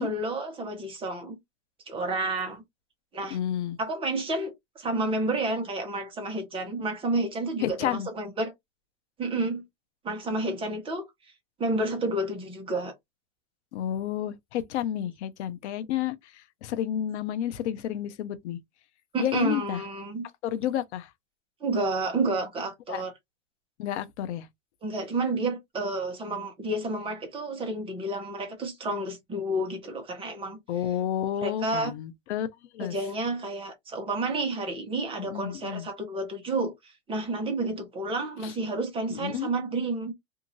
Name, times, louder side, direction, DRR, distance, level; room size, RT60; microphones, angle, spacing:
voice 1, 0.0-1.4 1.9-2.6 3.1-3.4 3.8-8.5 9.2-9.6 10.0-11.1 11.6-12.9 19.1-20.3 21.6-23.1 24.8-30.6 31.4-31.9 32.8-40.1, right 2 dB, 15° right, 0.9 m, -30 dB
voice 2, 3.3-3.8 7.6-8.1 13.7-18.6 19.2-19.8 20.4-21.1 22.9-23.0 23.8-24.5 30.7-32.5 32.7-33.0 35.2-35.9 38.4-38.5 39.1-39.5, left 11 dB, 65° left, 0.7 m, -31 dB
2.7 x 2.5 x 2.9 m
supercardioid pair, 145°, 37 cm